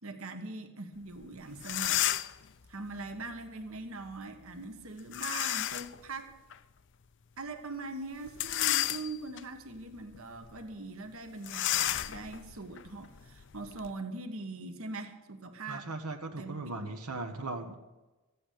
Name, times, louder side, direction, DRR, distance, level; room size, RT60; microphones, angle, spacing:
voice 1, 0.0-2.0 2.7-6.3 7.4-15.9 16.4-16.7, right 3 dB, 70° right, 7 dB, 1.4 m, -42 dB
sound 1, 1.2-1.3 1.6-2.4 5.1-6.0 6.5-6.6 8.3-9.4 10.0-10.2 10.4-10.6 11.4-13.9, left 13 dB, 55° left, 0.5 m, -32 dB
voice 2, 15.7-17.7, right 2 dB, 90° right, 3 dB, 1.2 m, -38 dB
14.5 x 8.5 x 8.4 m, 1.1 s
head